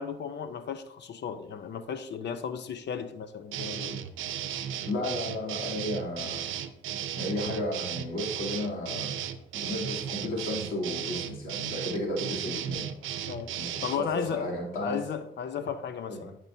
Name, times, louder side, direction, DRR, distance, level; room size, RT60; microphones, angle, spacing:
voice 1, 0.0-4.0 13.3-13.5 13.8-14.5 14.8-16.4, left 7 dB, 60° left, 10 dB, 0.8 m, -34 dB
sound 1, 3.5-14.0, right 10 dB, 85° right, 0.7 m, -35 dB
voice 2, 4.8-6.4 7.1-9.1 9.5-12.9 13.5-15.0 16.1-16.2, left 1 dB, 85° left, -3 dB, 3.0 m, -33 dB
13.5 x 6.1 x 2.7 m, 0.80 s
cardioid pair, 90°, 20 cm